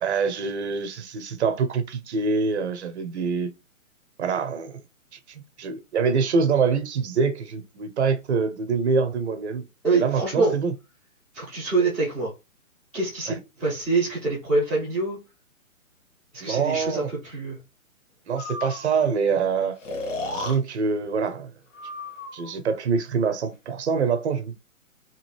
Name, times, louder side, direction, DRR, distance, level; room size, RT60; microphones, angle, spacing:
voice 1, 0.0-3.5 4.2-4.8 5.1-9.7 9.9-10.7 13.3-13.4 16.4-17.1 18.3-19.8 20.3-21.5 22.3-24.6, right 5 dB, 50° right, 0.7 m, -25 dB
voice 2, 9.8-10.5 11.3-12.3 12.9-15.2 16.3-17.6, right 3 dB, ahead, 0.5 m, -25 dB
Breathing, 18.4-19.0 19.8-20.6 21.7-22.6, left 2 dB, 60° left, 1.3 m, -33 dB
2.9 x 2.6 x 3.0 m
figure-of-eight pair, 135°, 42 cm